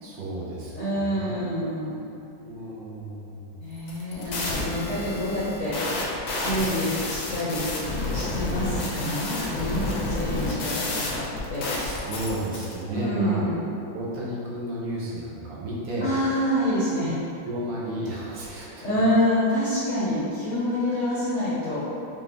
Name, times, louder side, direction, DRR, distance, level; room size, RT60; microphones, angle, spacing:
voice 1, 0.0-1.3 2.4-3.6 8.4-8.8 11.7-13.6 13.9-16.1 17.4-19.0 20.9-21.2, right 1 dB, 75° right, -6 dB, 1.6 m, -33 dB
voice 2, 0.7-2.0 3.6-6.0 6.3-7.7 8.1-11.2 11.5-11.7 12.9-13.5 16.0-17.1 18.8-21.9, equal, 55° left, -10 dB, 0.8 m, -27 dB
sound 1, 3.8-12.7, left 2 dB, 85° left, 1.5 m, -30 dB
5.5 x 2.5 x 3.4 m, 2.9 s
omnidirectional pair, 2.1 m